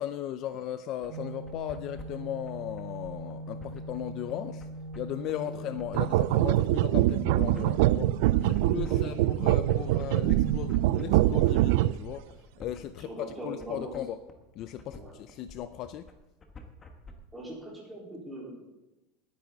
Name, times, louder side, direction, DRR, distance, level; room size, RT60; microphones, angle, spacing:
voice 1, 0.0-4.7 5.0-8.1 8.4-14.2 14.5-16.1, left 11 dB, 35° left, 11 dB, 0.4 m, -37 dB
sound 1, 1.0-17.1, left 2 dB, 15° left, 1.3 m, -49 dB
Organ, 1.1-12.0, right 1 dB, 80° right, 1.6 m, -41 dB
sound 2, 5.9-12.1, right 15 dB, 60° right, 0.4 m, -24 dB
voice 2, 8.9-9.3 13.0-13.9 15.0-15.1 17.3-18.6, right 1 dB, 5° right, -5 dB, 4.1 m, -41 dB
19.5 x 9.7 x 3.9 m, 1.0 s
supercardioid pair, 175°, 0 cm